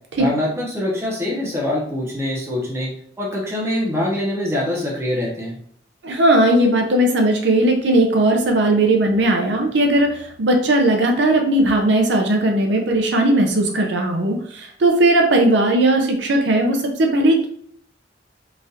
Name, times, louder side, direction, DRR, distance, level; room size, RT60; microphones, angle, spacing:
voice 1, 0.2-5.6, left 1 dB, 15° right, -3 dB, 0.8 m, -24 dB
voice 2, 6.0-17.5, right 1 dB, 70° right, 2 dB, 0.5 m, -17 dB
3.9 x 2.5 x 2.7 m, 0.65 s
head